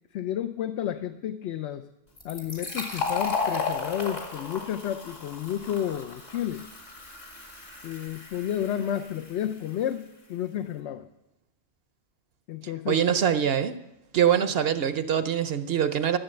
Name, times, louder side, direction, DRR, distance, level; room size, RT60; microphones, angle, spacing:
voice 1, 0.1-1.9 2.2-6.7 7.8-11.1 12.5-13.0, left 10 dB, 75° left, 10 dB, 0.8 m, -31 dB
Fill (with liquid), 2.2-9.5, left 4 dB, 55° left, 2.4 m, -34 dB
voice 2, 12.6-13.8 14.1-16.2, right 9 dB, 60° right, 11 dB, 0.8 m, -24 dB
12.5 x 7.0 x 7.6 m, 0.90 s
omnidirectional pair, 1.2 m